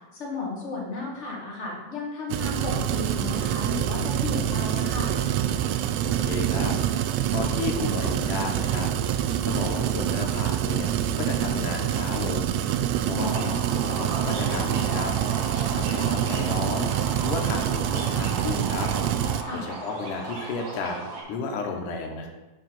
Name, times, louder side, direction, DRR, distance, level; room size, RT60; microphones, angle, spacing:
voice 1, 0.1-5.1 13.1-13.6 19.4-19.7, left 3 dB, 55° left, -3 dB, 0.7 m, -34 dB
sound 1, 2.3-19.4, right 10 dB, 85° right, 1.6 m, -26 dB
voice 2, 6.0-8.9 9.4-12.6 13.0-15.1 15.7-16.9 17.2-18.9 19.5-21.0 21.3-22.3, left 4 dB, 80° left, 2 dB, 2.5 m, -33 dB
sound 2, 13.2-21.2, right 2 dB, 55° right, 2.7 m, -36 dB
6.9 x 4.7 x 5.9 m, 1.1 s
omnidirectional pair, 3.6 m